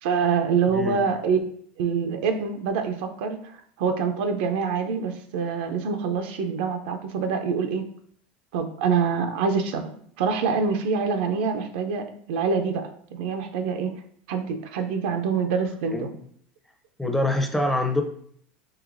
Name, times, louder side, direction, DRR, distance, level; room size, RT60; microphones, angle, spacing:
voice 1, 0.0-1.4 1.8-3.4 3.8-7.9 8.5-9.9 10.2-13.9 14.3-16.1, right 5 dB, 80° right, 6 dB, 0.5 m, -25 dB
voice 2, 0.7-1.0 15.9-16.1 17.0-18.0, left 1 dB, 5° left, 3 dB, 0.6 m, -24 dB
4.7 x 2.9 x 2.5 m, 0.62 s
supercardioid pair, 110°, 5 cm